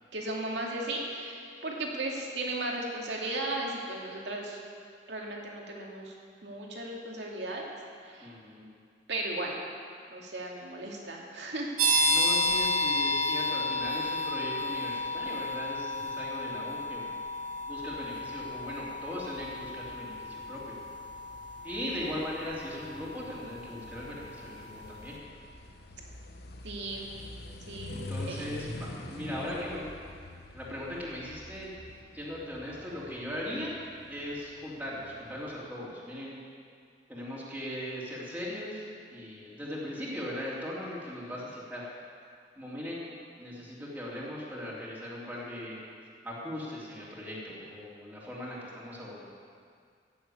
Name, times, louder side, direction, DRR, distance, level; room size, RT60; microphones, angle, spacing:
voice 1, 0.1-4.6 5.1-6.1 6.4-7.7 8.0-8.4 9.1-9.6 10.1-12.3 26.6-27.1 27.7-28.0 28.3-28.4, right 2 dB, 75° right, -1 dB, 2.4 m, -36 dB
voice 2, 8.2-8.7 12.0-17.2 17.7-20.8 21.6-25.2 27.9-29.9 30.5-31.7 32.1-33.8 34.1-36.4 37.1-38.8 39.1-41.9 42.6-43.1 43.4-45.8 46.2-49.3, left 1 dB, 10° right, -6 dB, 2.8 m, -39 dB
sound 1, 11.8-24.3, left 1 dB, 45° right, 2.3 m, -32 dB
sound 2, 17.7-35.6, left 2 dB, 65° left, 1.0 m, -47 dB
15.5 x 7.2 x 8.5 m, 2.2 s
head